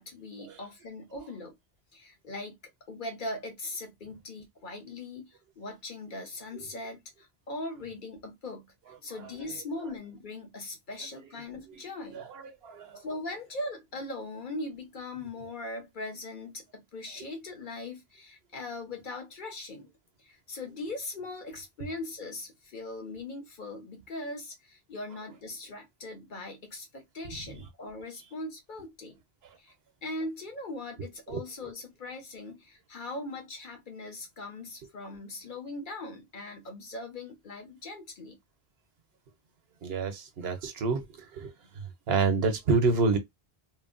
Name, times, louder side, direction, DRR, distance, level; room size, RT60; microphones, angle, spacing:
voice 1, 0.0-1.5 1.9-2.6 2.9-8.7 9.0-12.2 13.0-19.9 20.2-29.2 29.6-29.7 30.0-38.4, left 2 dB, 55° left, 0.9 m, -40 dB
voice 2, 11.5-11.8 12.1-13.0 31.3-31.5 39.8-43.2, right 4 dB, 75° right, 0.9 m, -29 dB
3.1 x 2.2 x 2.4 m
omnidirectional pair, 1.0 m